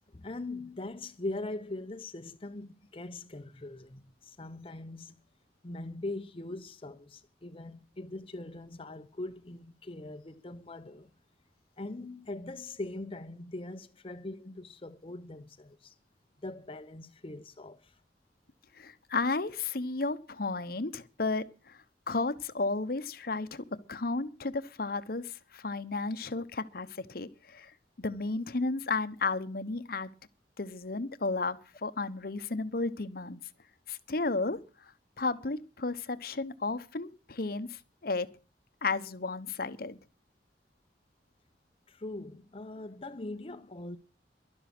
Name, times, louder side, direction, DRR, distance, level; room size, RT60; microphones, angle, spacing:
voice 1, 0.1-5.2 5.6-11.1 11.8-15.9 16.4-18.0 41.9-44.0, left 2 dB, 30° left, 0.8 m, -41 dB
voice 2, 18.8-21.8 22.1-27.7 28.0-30.1 30.6-33.4 33.9-34.6 35.2-38.3 38.8-40.0, left 3 dB, 55° left, 1.0 m, -33 dB
12.0 x 12.0 x 6.0 m
head